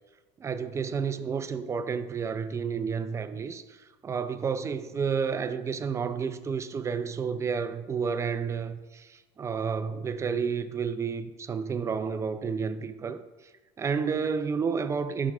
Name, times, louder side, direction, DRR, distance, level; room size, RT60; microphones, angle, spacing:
voice 1, 0.4-13.2 13.8-15.3, right 6 dB, 20° right, 0.3 m, -30 dB
12.5 x 6.0 x 2.3 m
cardioid pair, 130°, 13 cm